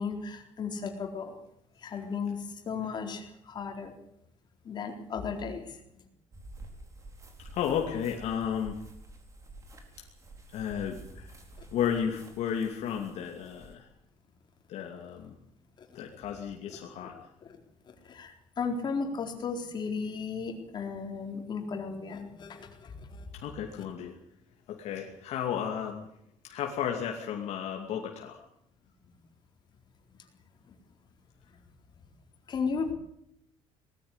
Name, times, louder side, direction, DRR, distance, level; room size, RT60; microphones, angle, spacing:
voice 1, 0.0-1.3 1.8-3.9 4.6-5.8 18.0-23.3 23.7-23.8 32.5-32.9, left 5 dB, 40° left, 3 dB, 4.1 m, -35 dB
sound 1, 6.3-13.8, right 2 dB, 25° right, 4.3 m, -49 dB
voice 2, 7.4-8.8 10.5-11.3 11.7-13.9 14.7-15.3 15.9-17.1 23.3-24.2 24.7-26.1 26.4-28.4, left 8 dB, 70° left, 1 dB, 2.7 m, -33 dB
20.0 x 14.0 x 9.9 m, 0.75 s
cardioid pair, 140°, 12 cm